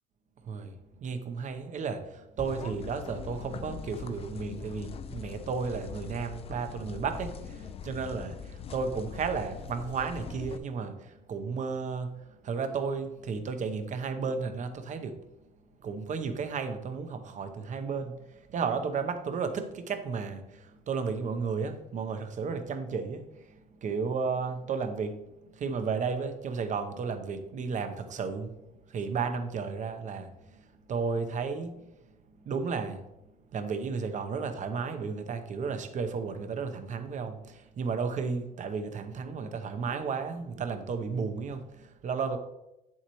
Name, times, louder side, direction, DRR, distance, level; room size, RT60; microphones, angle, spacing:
voice 1, 0.4-15.2 15.8-23.2 23.5-25.2 25.5-28.6 28.9-31.7 32.4-33.0 33.5-42.4, right 5 dB, 45° right, 0.9 m, -33 dB
sound 1, 2.4-10.6, left 6 dB, 35° left, 0.4 m, -42 dB
8.2 x 7.3 x 3.1 m
cardioid pair, 110°, 17 cm